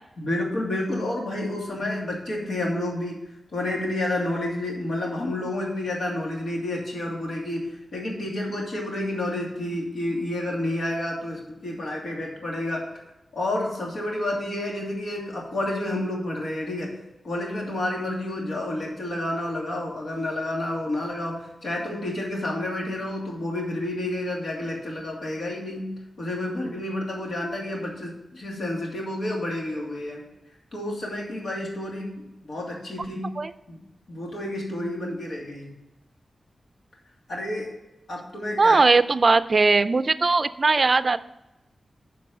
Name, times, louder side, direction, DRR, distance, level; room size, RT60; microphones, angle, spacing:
voice 1, 0.2-3.2 3.5-12.8 13.3-17.0 17.2-30.2 30.7-33.4 33.7-33.8 34.1-35.7 37.3-37.7 38.1-38.8, left 1 dB, 80° left, -2 dB, 2.8 m, -30 dB
voice 2, 38.6-41.2, right 3 dB, 45° right, 14 dB, 0.4 m, -19 dB
9.9 x 5.3 x 5.4 m, 0.97 s
wide cardioid pair, 115°, 0 cm